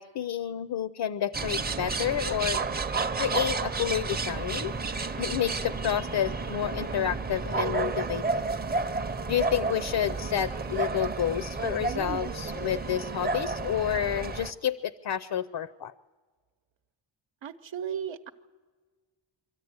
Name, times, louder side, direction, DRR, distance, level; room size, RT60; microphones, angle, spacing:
voice 1, 0.0-2.6 3.2-4.7 5.2-8.4 9.3-15.9, left 10 dB, 60° left, 15 dB, 0.6 m, -30 dB
sound 1, 1.3-14.5, right 4 dB, 20° right, 0.6 m, -31 dB
voice 2, 17.4-18.3, right 8 dB, 80° right, 7 dB, 0.9 m, -35 dB
24.5 x 14.5 x 9.5 m, 1.4 s
wide cardioid pair, 175°, 45 cm